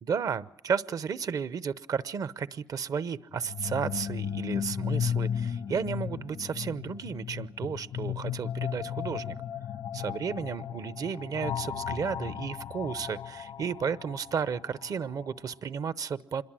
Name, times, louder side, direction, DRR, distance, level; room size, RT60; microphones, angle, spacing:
voice 1, 0.0-9.3 9.9-16.4, right 6 dB, 65° right, 16 dB, 0.8 m, -33 dB
sound 1, 3.3-15.2, left 8 dB, 85° left, 1.2 m, -35 dB
26.5 x 21.5 x 7.6 m, 0.85 s
cardioid pair, 70°, 7 cm